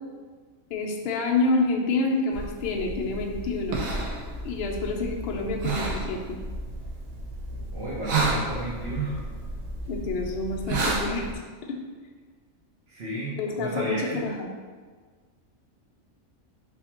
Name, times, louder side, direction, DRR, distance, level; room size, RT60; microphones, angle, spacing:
voice 1, 0.7-3.8 4.4-6.4 9.9-11.3 11.7-11.8 13.3-14.5, left 3 dB, 60° left, 0 dB, 0.7 m, -28 dB
sound 1, 2.3-11.3, right 2 dB, 90° right, 1.1 m, -31 dB
voice 2, 7.7-9.2 12.9-14.2, right 1 dB, 50° right, -8 dB, 1.0 m, -33 dB
3.5 x 2.8 x 4.4 m, 1.5 s
omnidirectional pair, 1.4 m